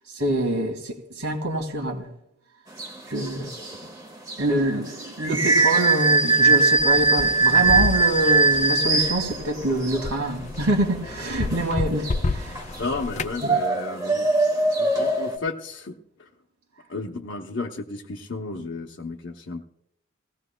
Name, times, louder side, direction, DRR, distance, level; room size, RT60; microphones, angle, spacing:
voice 1, 0.1-2.1 3.1-3.7 4.4-12.6 13.4-13.5, right 1 dB, 85° right, 2.0 m, -25 dB
sound 1, 2.7-15.4, right 3 dB, 15° right, 1.4 m, -22 dB
sound 2, 6.8-13.4, left 3 dB, 35° left, 0.4 m, -31 dB
voice 2, 12.8-14.3 14.8-16.3 16.9-19.6, left 3 dB, 55° left, 0.8 m, -33 dB
19.0 x 16.0 x 2.2 m
head